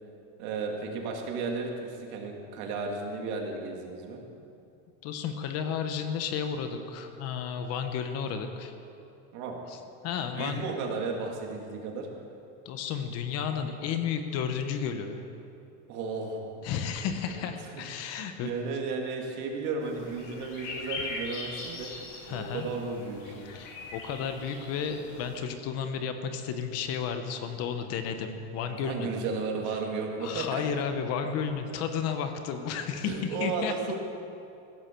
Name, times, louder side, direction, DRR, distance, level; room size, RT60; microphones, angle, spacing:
voice 1, 0.4-4.2 9.3-9.6 10.3-12.1 15.9-16.6 17.3-17.4 17.7-21.9 22.3-23.6 28.7-30.6 33.0-34.0, right 4 dB, 50° right, 1 dB, 2.3 m, -34 dB
voice 2, 5.0-8.7 9.7-9.8 10.0-10.7 12.6-15.2 16.6-18.5 22.3-22.7 23.5-29.1 30.2-33.7, left 7 dB, 40° left, 7 dB, 1.0 m, -32 dB
sound 1, 19.8-25.4, left 3 dB, 70° left, 4.0 m, -41 dB
16.0 x 13.5 x 4.6 m, 2.7 s
supercardioid pair, 150°, 39 cm